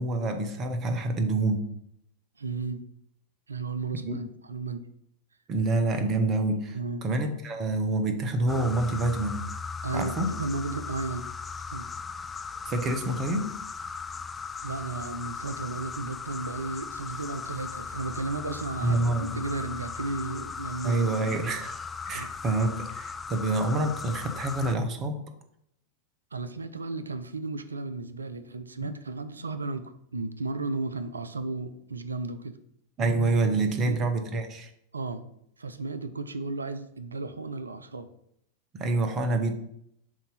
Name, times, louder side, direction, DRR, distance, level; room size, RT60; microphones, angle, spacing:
voice 1, 0.0-1.7 3.9-4.3 5.5-9.5 9.9-10.3 12.6-13.5 18.8-19.3 20.8-21.7 22.1-25.2 28.8-28.9 33.0-34.7 38.7-39.6, right 2 dB, 30° right, 6 dB, 0.9 m, -27 dB
voice 2, 2.4-2.8 3.5-4.9 6.7-7.0 9.8-11.3 11.7-11.9 14.6-21.1 22.1-22.3 23.5-23.6 26.3-32.6 33.8-34.0 34.9-35.3 35.6-38.1, right 3 dB, 75° right, 11 dB, 0.5 m, -34 dB
sound 1, 8.5-24.8, left 5 dB, 15° left, 0.3 m, -38 dB
7.2 x 2.8 x 5.5 m, 0.73 s
figure-of-eight pair, 90°, 0 cm